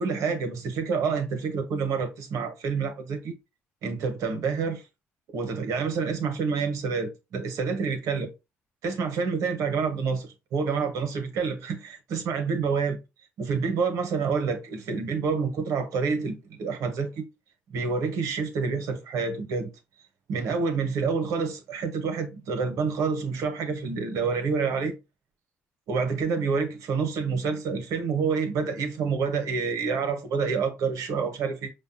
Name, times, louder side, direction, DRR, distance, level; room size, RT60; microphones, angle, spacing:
voice 1, 0.0-3.3 3.8-4.8 5.3-8.3 8.8-13.0 13.4-17.2 17.7-19.7 20.3-24.9 25.9-31.7, right 5 dB, 75° right, 0.9 m, -28 dB
5.0 x 2.3 x 2.5 m
supercardioid pair, 65°, 6 cm